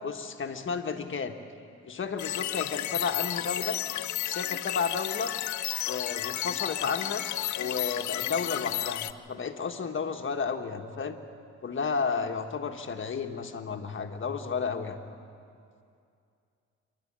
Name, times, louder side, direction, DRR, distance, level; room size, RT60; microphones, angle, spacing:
voice 1, 0.0-1.3 1.8-3.8 4.2-5.3 5.8-7.3 7.5-11.2 11.6-15.0, left 5 dB, 40° left, 5 dB, 1.6 m, -32 dB
sound 1, 2.2-9.1, left 14 dB, 70° left, 0.7 m, -32 dB
27.0 x 11.5 x 8.9 m, 2.4 s
cardioid pair, 90°, 30 cm